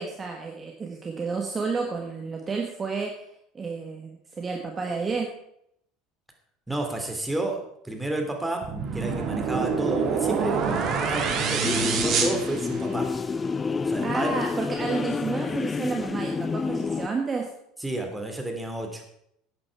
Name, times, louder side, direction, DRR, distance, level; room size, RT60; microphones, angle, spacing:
voice 1, 0.0-3.2 3.5-5.3 14.0-17.5, right 4 dB, 25° right, 2 dB, 1.6 m, -31 dB
voice 2, 6.7-13.1 13.9-14.4 17.8-19.0, right 2 dB, 5° right, 2 dB, 2.9 m, -31 dB
sound 1, 8.6-13.2, right 6 dB, 45° right, 2.1 m, -27 dB
sound 2, 11.6-17.1, left 4 dB, 25° left, 0.5 m, -28 dB
11.5 x 8.8 x 4.7 m, 0.74 s
figure-of-eight pair, 70°, 0 cm